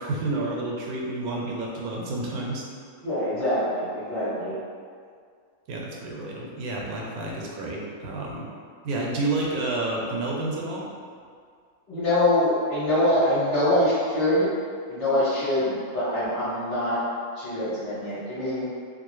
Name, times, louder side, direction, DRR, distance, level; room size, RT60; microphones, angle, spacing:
voice 1, 0.0-2.7 5.7-8.5 8.8-10.9, right 2 dB, 80° right, -2 dB, 1.1 m, -30 dB
voice 2, 3.0-4.6 11.9-14.5 14.9-17.0 17.3-18.7, left 1 dB, 35° left, -13 dB, 1.0 m, -24 dB
2.6 x 2.4 x 3.0 m, 2.1 s
omnidirectional pair, 1.5 m